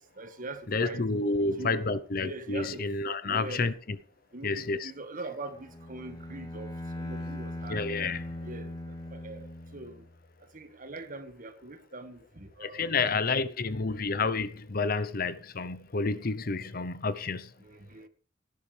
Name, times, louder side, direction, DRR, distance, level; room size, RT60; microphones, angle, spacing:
voice 1, 0.0-1.0 1.5-1.8 2.2-2.9 3.2-3.7 4.3-7.9 8.4-10.1 10.4-13.0 17.6-18.1, right 2 dB, 45° right, 1.7 m, -43 dB
voice 2, 0.7-3.7 4.4-4.9 7.7-8.2 12.6-17.4, left 3 dB, 50° left, 0.9 m, -29 dB
Bowed string instrument, 5.5-10.3, left 1 dB, 20° left, 1.9 m, -40 dB
17.5 x 11.5 x 3.4 m
head